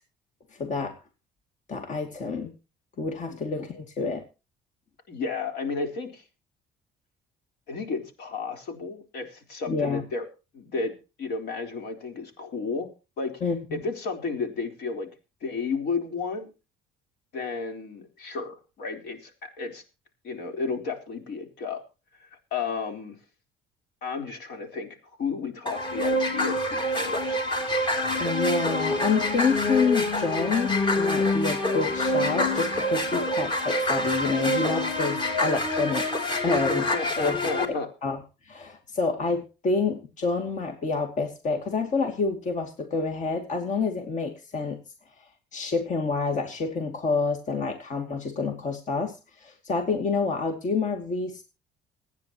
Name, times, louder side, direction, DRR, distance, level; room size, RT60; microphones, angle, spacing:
voice 1, 0.6-0.9 1.7-2.5 3.0-4.2 9.7-10.0 13.4-13.8 28.2-36.8 37.2-37.4 37.7-38.2 38.5-44.8 45.5-51.4, left 4 dB, 45° left, 5 dB, 2.6 m, -28 dB
voice 2, 5.1-6.2 7.7-10.2 10.5-10.9 11.2-12.9 13.2-13.3 13.7-15.1 15.4-16.5 17.3-19.8 20.2-21.8 22.2-23.2 24.0-27.3 36.3-37.9, left 4 dB, 75° left, 5 dB, 4.1 m, -32 dB
sound 1, 25.7-37.6, left 1 dB, 30° left, 3.8 m, -26 dB
26.0 x 9.7 x 3.0 m, 0.31 s
cardioid pair, 110°, 17 cm